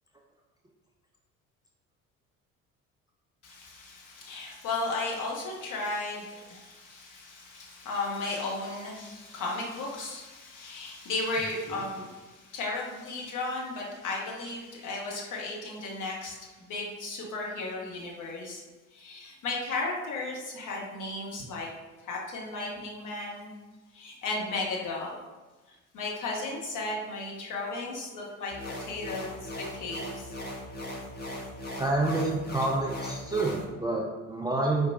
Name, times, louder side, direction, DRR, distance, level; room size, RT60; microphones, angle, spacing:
voice 1, 3.4-18.6 18.9-21.7 22.0-23.5 23.9-25.1 25.7-30.3, left 2 dB, 50° left, -2 dB, 1.3 m, -35 dB
sound 1, 28.5-33.6, left 1 dB, 25° left, 1.0 m, -39 dB
voice 2, 31.8-34.9, right 2 dB, 10° right, -2 dB, 0.4 m, -28 dB
4.5 x 2.8 x 3.5 m, 1.2 s
figure-of-eight pair, 50°, 40 cm